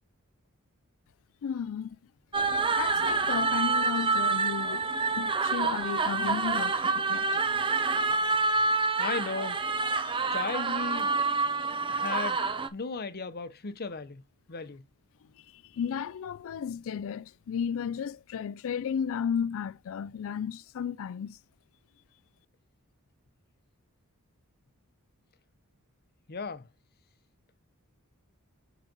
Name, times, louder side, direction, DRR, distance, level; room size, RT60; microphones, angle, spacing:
voice 1, 1.4-2.0 2.7-7.4 10.0-10.2 15.5-21.4, left 7 dB, 60° left, 0.3 m, -34 dB
sound 1, 2.3-12.7, right 4 dB, 25° right, 0.7 m, -27 dB
voice 2, 9.0-9.6 10.3-11.1 11.9-12.4 12.7-14.2 14.5-14.9 26.3-26.7, left 4 dB, 45° left, 0.8 m, -35 dB
8.9 x 4.0 x 4.0 m
head